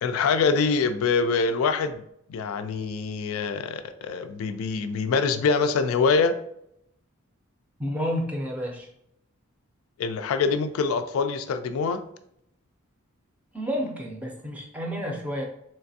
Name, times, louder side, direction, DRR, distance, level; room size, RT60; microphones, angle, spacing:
voice 1, 0.0-2.0 2.3-6.3 10.0-12.0, left 4 dB, 75° left, 9 dB, 0.3 m, -24 dB
voice 2, 7.8-8.9 13.5-15.4, equal, 5° right, -1 dB, 0.5 m, -30 dB
3.3 x 3.1 x 2.7 m, 0.74 s
head